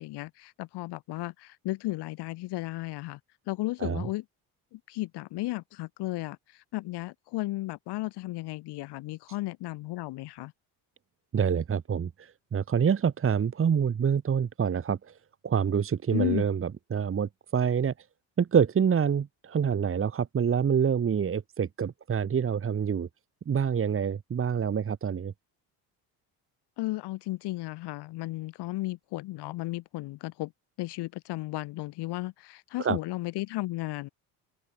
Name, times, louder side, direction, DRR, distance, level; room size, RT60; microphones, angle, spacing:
voice 1, 0.0-3.2 3.5-4.3 4.7-10.5 16.1-16.5 26.8-30.5 30.8-34.1, left 19 dB, 75° left, 2.1 m, -34 dB
voice 2, 11.3-12.1 12.5-15.0 15.4-17.9 18.4-23.1 23.5-25.3 32.8-33.0, right 7 dB, 30° right, 1.7 m, -26 dB
open air
cardioid pair, 100°, 41 cm